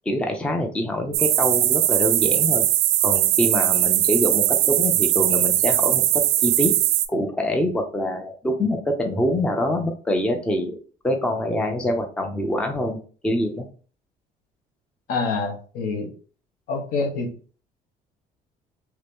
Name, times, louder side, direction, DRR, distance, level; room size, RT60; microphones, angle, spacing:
voice 1, 0.1-2.7 3.0-6.7 7.1-10.8 11.0-13.7, left 1 dB, 5° left, 4 dB, 0.4 m, -25 dB
sound 1, 1.1-7.1, right 14 dB, 85° right, 0.4 m, -20 dB
voice 2, 15.1-16.1 16.7-17.3, left 4 dB, 70° left, 4 dB, 0.8 m, -26 dB
2.9 x 2.7 x 3.4 m, 0.40 s
cardioid pair, 150°, 16 cm